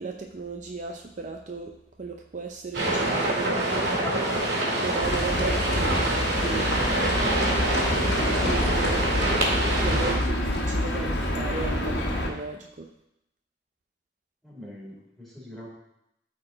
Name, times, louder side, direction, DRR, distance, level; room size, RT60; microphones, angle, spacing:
voice 1, 0.0-1.7 2.0-4.0 4.8-6.7 8.3-9.0 9.8-12.9, right 3 dB, 45° right, 3 dB, 0.5 m, -35 dB
sound 1, 2.7-10.1, right 1 dB, 80° right, 2.2 m, -26 dB
Livestock farm animals working animals, 5.0-12.3, left 1 dB, 75° left, 1.4 m, -27 dB
voice 2, 14.4-15.7, left 1 dB, ahead, -7 dB, 3.2 m, -43 dB
13.0 x 4.4 x 3.9 m, 0.84 s
head